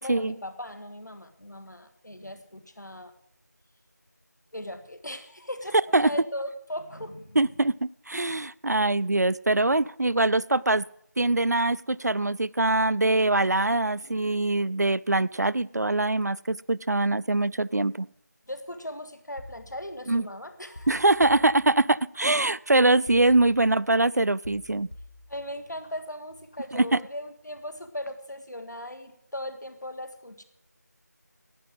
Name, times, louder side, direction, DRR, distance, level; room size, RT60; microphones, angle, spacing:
voice 1, 0.0-3.1 4.5-5.8 6.0-7.4 18.5-21.0 25.3-30.4, left 1 dB, 75° left, 9 dB, 1.9 m, -38 dB
voice 2, 7.4-10.8 11.2-18.1 20.1-20.3 20.9-24.9 26.7-27.0, right 2 dB, 65° right, 20 dB, 0.4 m, -23 dB
sound 1, 19.4-20.3 20.7-22.2 23.1-24.0 24.4-25.9 26.3-26.7, left 2 dB, 30° left, 1.1 m, -48 dB
11.5 x 9.4 x 7.6 m, 0.76 s
figure-of-eight pair, 175°, 10 cm